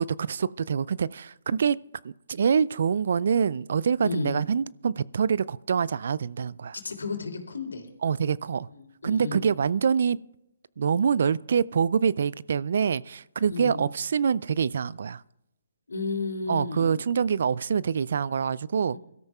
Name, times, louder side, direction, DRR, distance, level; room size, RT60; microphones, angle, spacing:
voice 1, 0.0-1.8 2.0-6.8 8.0-8.7 9.0-10.2 10.8-15.2 16.5-19.0, right 6 dB, 60° right, 0.3 m, -25 dB
voice 2, 4.0-4.3 6.8-7.9 8.7-9.4 13.5-13.8 15.9-17.0 18.9-19.0, left 4 dB, 80° left, 3.1 m, -33 dB
23.0 x 13.0 x 2.4 m
figure-of-eight pair, 140°, 0 cm